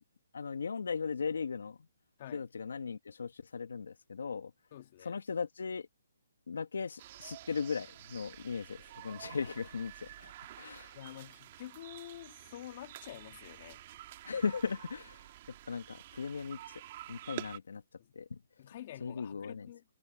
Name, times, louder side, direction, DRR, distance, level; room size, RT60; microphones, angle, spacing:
voice 1, 0.3-1.8 2.3-4.5 5.0-5.9 6.5-10.3 10.6-11.0 14.2-15.3 15.7-16.8 17.1-17.8 18.1-18.4 19.0-19.7, left 5 dB, 80° left, 1.5 m, -37 dB
voice 2, 4.7-5.2 10.9-13.8 18.0-18.1 18.6-19.8, left 13 dB, 40° left, 2.4 m, -48 dB
sound 1, 7.0-17.6, right 14 dB, 40° right, 1.5 m, -49 dB
hypercardioid pair, 155°, 0 cm